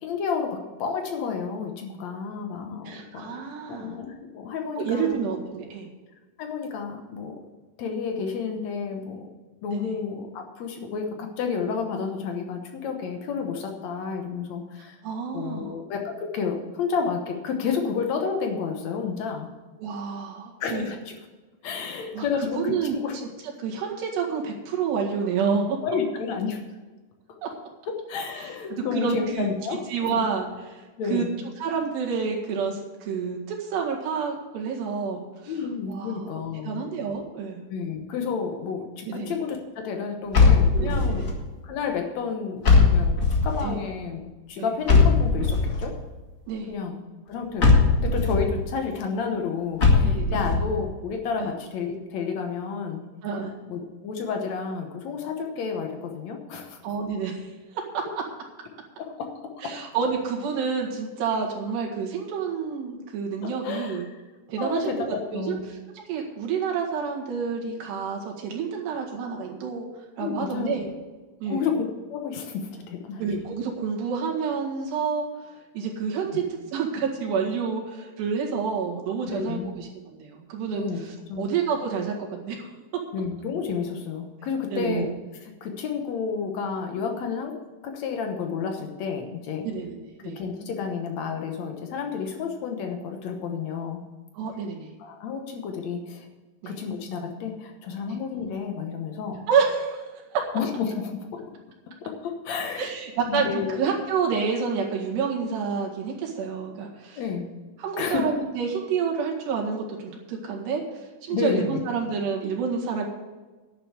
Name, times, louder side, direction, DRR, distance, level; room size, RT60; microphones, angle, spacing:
voice 1, 0.0-3.3 3.7-5.2 6.4-7.4 7.8-9.2 9.6-15.0 15.3-19.5 20.6-21.1 21.6-23.2 25.8-26.6 27.9-29.9 30.1-30.2 31.0-31.4 35.5-36.8 37.7-41.3 41.6-43.2 43.4-44.2 44.5-45.9 46.7-47.0 47.3-53.0 53.7-56.8 59.0-59.3 59.6-59.7 63.4-64.2 64.6-65.7 70.2-70.8 71.5-73.2 76.3-76.4 79.3-79.7 80.7-81.0 81.3-81.5 83.1-85.1 85.3-87.6 87.8-89.7 90.2-94.0 95.0-96.3 96.7-99.4 100.5-101.4 102.0-102.9 103.3-103.9 107.2-107.5 108.0-108.2 111.3-111.8, left 6 dB, 75° left, 3 dB, 1.6 m, -31 dB
voice 2, 2.9-4.0 4.8-5.9 9.7-9.9 15.0-15.8 19.8-20.9 22.1-22.3 22.5-23.0 23.6-25.8 27.4-27.5 28.4-29.5 29.9-30.8 31.1-31.3 31.6-35.5 35.9-36.3 36.6-37.6 39.1-39.4 40.7-41.3 43.6-43.8 44.6-44.7 46.5-46.8 50.0-50.4 51.4-51.5 53.2-53.5 56.8-58.0 59.6-64.0 64.5-65.1 65.3-65.8 66.1-69.9 70.2-70.9 71.4-71.7 73.2-76.4 76.7-79.9 80.2-82.7 84.7-85.1 89.6-90.0 90.2-90.4 94.3-94.9 96.6-96.7 98.1-98.2 99.5-100.4 102.8-107.2 107.8-113.1, right 6 dB, 85° right, -1 dB, 4.0 m, -29 dB
sound 1, 40.3-41.3 42.6-43.6 44.9-45.8 47.6-48.5 49.8-50.6, left 4 dB, 90° left, 0.7 m, -18 dB
11.0 x 6.9 x 8.0 m, 1.3 s
omnidirectional pair, 4.7 m